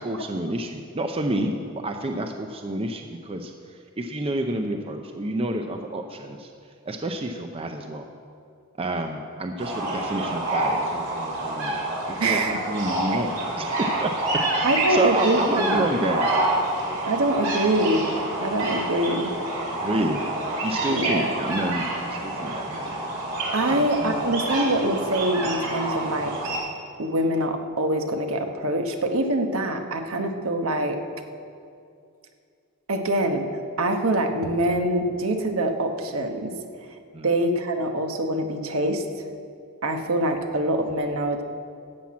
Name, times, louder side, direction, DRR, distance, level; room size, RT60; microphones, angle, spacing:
voice 1, 0.0-1.5 1.8-8.1 8.8-11.8 12.1-13.7 14.0-14.1 14.5-16.3 19.8-20.2 20.6-23.4 23.7-24.3 37.1-37.3, right 1 dB, 25° right, 4 dB, 0.5 m, -29 dB
sound 1, 9.6-26.6, right 2 dB, 90° right, 3.3 m, -28 dB
voice 2, 12.2-12.6 13.1-13.2 14.6-15.4 15.7-15.8 17.1-18.1 18.4-19.3 20.9-21.4 23.5-26.3 27.0-31.0 32.9-36.5 37.2-39.3 39.8-41.4, right 1 dB, 70° right, 5 dB, 1.1 m, -24 dB
13.0 x 5.9 x 8.5 m, 2.4 s
head